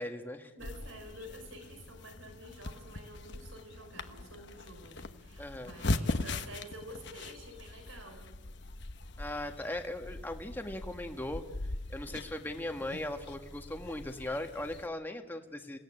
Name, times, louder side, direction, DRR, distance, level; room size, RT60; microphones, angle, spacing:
voice 1, 0.0-0.7 5.4-5.7 9.2-11.5 11.9-15.8, left 1 dB, 10° left, 4 dB, 1.5 m, -38 dB
voice 2, 0.5-8.4, equal, 85° right, 6 dB, 4.4 m, -49 dB
sound 1, 0.6-14.9, left 2 dB, 60° left, 1.1 m, -40 dB
27.5 x 17.5 x 8.8 m, 1.2 s
head